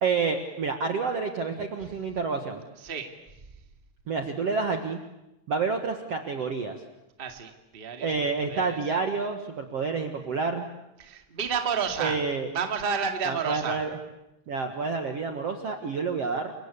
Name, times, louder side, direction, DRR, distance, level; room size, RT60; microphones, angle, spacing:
voice 1, 0.0-2.6 4.1-5.0 5.5-6.8 8.0-10.7 12.0-12.5 13.2-14.0 14.5-16.5, right 4 dB, 55° right, 5 dB, 2.0 m, -29 dB
voice 2, 7.2-8.1 8.5-8.8 11.0-12.2 12.5-13.8, right 6 dB, 20° right, 5 dB, 1.6 m, -30 dB
30.0 x 23.5 x 8.5 m, 0.92 s
omnidirectional pair, 4.7 m